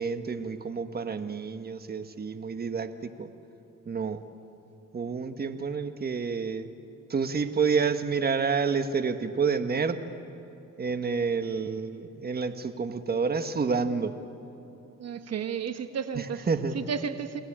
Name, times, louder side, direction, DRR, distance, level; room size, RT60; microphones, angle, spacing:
voice 1, 0.0-3.3 3.8-4.2 4.9-6.7 7.1-10.0 10.8-14.2 16.1-16.8, right 5 dB, 30° right, 9 dB, 1.4 m, -29 dB
voice 2, 15.0-16.5 16.7-17.4, right 7 dB, 55° right, 9 dB, 1.3 m, -33 dB
29.5 x 18.5 x 8.8 m, 2.9 s
cardioid pair, 90°, 30 cm